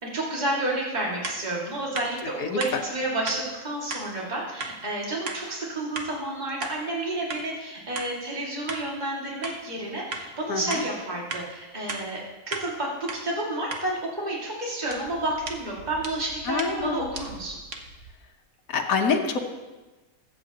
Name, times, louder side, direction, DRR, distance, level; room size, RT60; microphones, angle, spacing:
voice 1, 0.0-17.6, right 1 dB, 30° right, -4 dB, 2.3 m, -30 dB
sound 1, 1.2-1.4 1.9-2.1 2.6-2.7 3.3-3.4 3.9-4.0 4.6-4.7 5.3-5.4 6.0-6.1 6.6-6.8 7.3-7.4 7.9-8.1 8.7-8.8 9.4-9.6 10.1-10.2 10.7-10.8 11.3-11.4 11.9-12.0 12.5-12.7 13.1-13.2 13.7-13.8 14.9-18.1, right 4 dB, 55° right, 1.4 m, -36 dB
voice 2, 2.4-2.8 10.5-10.8 16.5-17.1 18.7-19.5, left 5 dB, 75° left, 2 dB, 1.5 m, -26 dB
21.5 x 8.5 x 2.9 m, 1.2 s
omnidirectional pair, 1.5 m